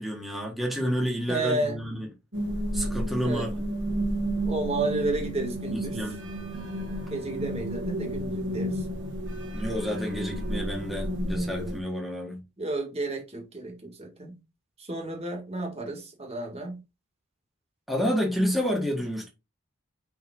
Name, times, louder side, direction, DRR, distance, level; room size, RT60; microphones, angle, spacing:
voice 1, 0.0-2.1 2.7-3.6 5.7-6.3 9.5-12.4 17.9-19.3, equal, ahead, 1.4 m, -29 dB
voice 2, 1.3-1.8 3.2-3.5 4.5-6.0 7.1-8.9 12.6-14.4 14.8-16.8, right 2 dB, 30° right, 1.8 m, -31 dB
sound 1, 2.3-11.8, right 1 dB, 55° right, 1.6 m, -31 dB
5.3 x 4.8 x 3.7 m
head